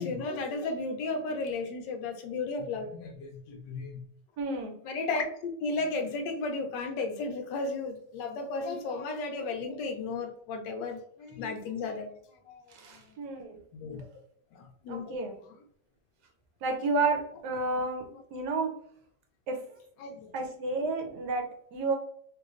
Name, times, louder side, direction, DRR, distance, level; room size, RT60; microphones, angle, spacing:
voice 1, 0.0-4.0 4.8-12.1 12.5-12.7 12.9-13.2 13.7-14.0 14.5-15.3 18.1-18.2 20.0-20.3, left 3 dB, 85° left, 5 dB, 1.3 m, -34 dB
voice 2, 4.4-4.8 12.7-13.6 14.9-15.4 16.6-18.8 19.5-19.6 20.3-21.9, right 3 dB, 75° right, 3 dB, 1.2 m, -31 dB
3.2 x 3.0 x 2.4 m, 0.64 s
omnidirectional pair, 1.9 m